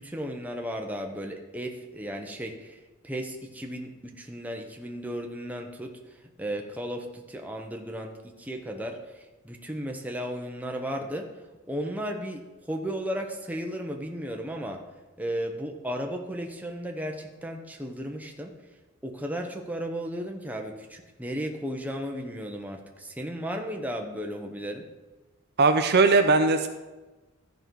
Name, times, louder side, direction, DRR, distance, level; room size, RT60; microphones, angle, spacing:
voice 1, 0.0-2.8 3.0-6.0 6.4-11.3 11.7-12.4 12.7-14.8 15.2-18.5 19.0-24.9, equal, 5° right, 2 dB, 0.8 m, -34 dB
voice 2, 25.6-26.7, right 3 dB, 50° right, 7 dB, 0.6 m, -19 dB
13.5 x 5.2 x 4.6 m, 1.2 s
head